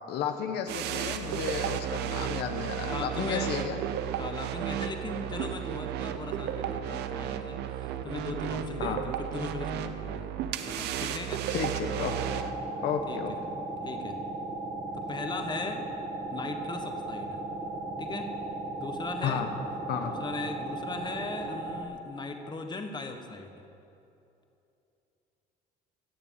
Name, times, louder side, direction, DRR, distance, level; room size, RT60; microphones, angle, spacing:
voice 1, 0.1-3.8 8.8-9.0 11.5-12.1 12.8-13.3 19.2-19.5 19.9-20.1, left 7 dB, 75° left, 6 dB, 1.1 m, -32 dB
sound 1, 0.7-12.5, right 10 dB, 80° right, 0.8 m, -33 dB
voice 2, 2.9-3.6 4.2-10.3 10.7-11.5 13.1-13.4 13.8-14.2 14.9-15.9 16.3-17.4 18.0-18.3 18.8-19.5 20.0-23.6, left 3 dB, 25° left, 5 dB, 1.4 m, -38 dB
sound 2, 12.1-21.8, right 2 dB, 35° right, 1.5 m, -36 dB
15.5 x 7.0 x 8.9 m, 2.8 s
cardioid pair, 110°, 17 cm